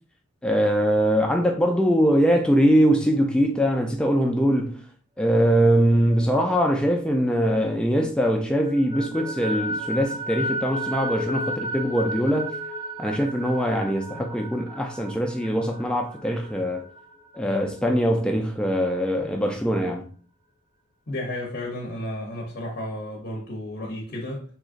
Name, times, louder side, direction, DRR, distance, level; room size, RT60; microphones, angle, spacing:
voice 1, 0.4-4.8 5.2-12.5 13.0-16.9 17.3-20.1, equal, 5° left, 0.3 m, -22 dB
sound 1, 5.2-8.0 8.4-17.8, equal, 15° right, 0.9 m, -34 dB
voice 2, 21.1-24.4, left 1 dB, 40° left, 0.7 m, -32 dB
3.7 x 2.9 x 2.4 m
head